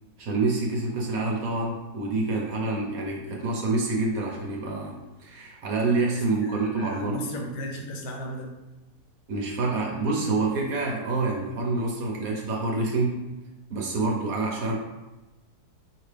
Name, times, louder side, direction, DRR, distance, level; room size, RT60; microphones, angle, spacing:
voice 1, 0.2-7.2 9.3-13.2 13.7-14.8, right 3 dB, 65° right, -1 dB, 0.9 m, -27 dB
voice 2, 6.4-8.5, equal, 80° left, 1 dB, 1.5 m, -35 dB
4.9 x 2.9 x 3.2 m, 1.0 s
omnidirectional pair, 2.1 m